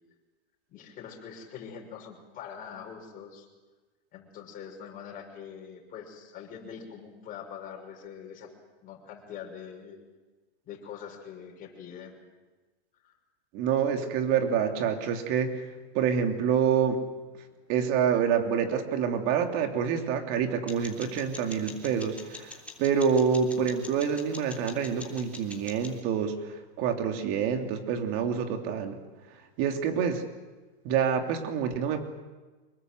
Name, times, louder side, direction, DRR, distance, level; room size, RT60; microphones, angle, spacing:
voice 1, 0.7-3.5 4.1-8.5 8.8-10.0 10.6-12.2 13.0-13.1, left 7 dB, 25° left, 0 dB, 6.0 m, -43 dB
voice 2, 13.5-15.5 15.9-17.0 17.7-22.5 22.8-26.3 26.8-29.0 29.6-30.2 30.8-32.0, right 7 dB, 40° right, 5 dB, 3.1 m, -27 dB
sound 1, 20.7-26.0, left 3 dB, 5° left, 3.3 m, -46 dB
25.0 x 21.5 x 8.0 m, 1.3 s
supercardioid pair, 150°, 31 cm